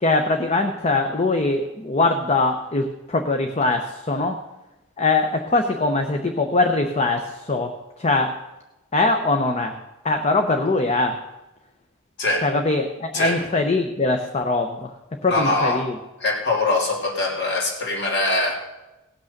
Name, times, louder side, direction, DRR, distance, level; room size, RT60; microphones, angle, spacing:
voice 1, 0.0-4.4 5.0-8.4 8.9-9.8 10.0-11.2 12.4-14.9 15.2-15.9, left 3 dB, 30° left, 5 dB, 0.7 m, -22 dB
voice 2, 15.3-15.8 16.2-18.6, left 2 dB, 55° left, 0 dB, 2.6 m, -22 dB
17.5 x 6.2 x 6.5 m, 1.0 s
head